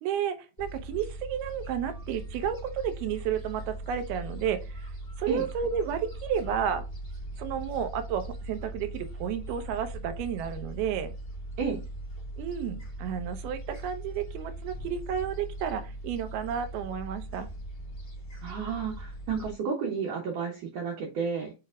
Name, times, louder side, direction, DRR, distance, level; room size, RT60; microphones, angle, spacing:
voice 1, 0.0-6.9 7.4-11.1 12.4-17.5, right 8 dB, 85° right, 9 dB, 2.8 m, -32 dB
Gull seagull, 0.6-19.5, right 1 dB, 25° left, 0.8 m, -40 dB
voice 2, 18.4-21.5, right 5 dB, 65° right, -1 dB, 2.5 m, -32 dB
6.7 x 6.1 x 2.4 m, 0.29 s
omnidirectional pair, 4.4 m